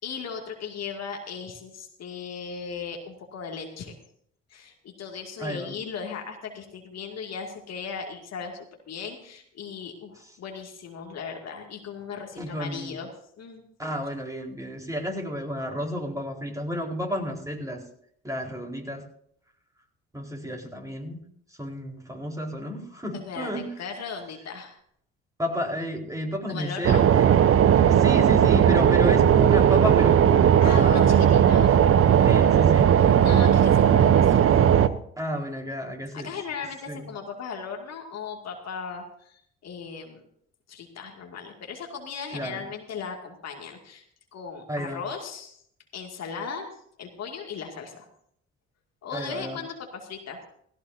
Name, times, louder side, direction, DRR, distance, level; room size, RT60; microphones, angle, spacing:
voice 1, 0.0-3.9 4.5-8.6 8.9-13.1 13.4-13.7 23.3-24.8 26.5-27.0 30.6-31.7 33.1-34.4 36.1-40.2 40.7-44.0 44.3-45.6 45.9-46.7 47.0-48.1 49.0-50.4, left 6 dB, 60° left, 2 dB, 2.3 m, -37 dB
voice 2, 5.4-5.7 12.4-13.0 13.8-17.8 18.2-19.0 20.1-21.2 21.6-23.7 25.4-27.4 27.9-31.1 32.2-32.9 35.2-36.3 36.9-37.1 42.3-42.6 44.7-45.0 49.1-49.6, equal, 10° right, 0 dB, 4.3 m, -32 dB
sound 1, 26.8-34.9, right 9 dB, 50° right, 0.8 m, -17 dB
16.5 x 16.5 x 2.7 m, 0.68 s
hypercardioid pair, 50°, 30 cm